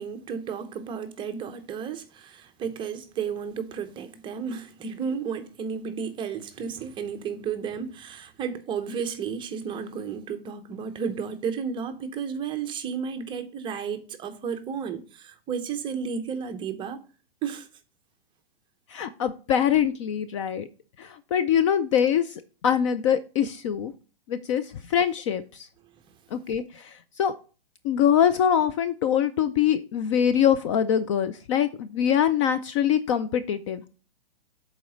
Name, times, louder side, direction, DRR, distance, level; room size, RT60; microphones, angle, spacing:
voice 1, 0.0-17.0 17.4-17.7, right 6 dB, 15° right, 0.6 m, -33 dB
voice 2, 18.9-20.7 21.0-23.9 24.3-25.7 26.3-27.3 27.8-33.8, left 9 dB, 35° left, 0.4 m, -24 dB
7.5 x 4.2 x 5.0 m
hypercardioid pair, 130°, 30 cm